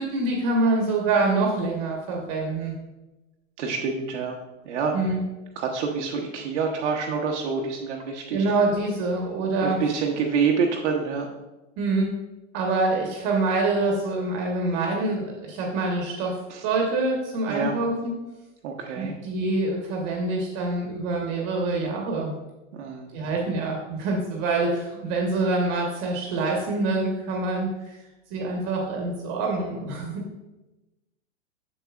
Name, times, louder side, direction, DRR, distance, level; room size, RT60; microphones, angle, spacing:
voice 1, 0.0-2.8 4.9-5.2 8.3-9.8 11.8-12.1 12.5-16.4 16.6-18.1 19.0-22.3 23.1-27.9 28.3-30.2, right 3 dB, 40° right, 0 dB, 1.2 m, -25 dB
voice 2, 3.6-4.4 4.7-5.0 5.6-8.4 9.6-11.3 16.5-16.6 17.5-17.8 18.6-19.1 22.8-23.1, right 5 dB, 60° right, 0 dB, 0.9 m, -27 dB
7.0 x 6.8 x 2.4 m, 1.0 s
hypercardioid pair, 130°, 39 cm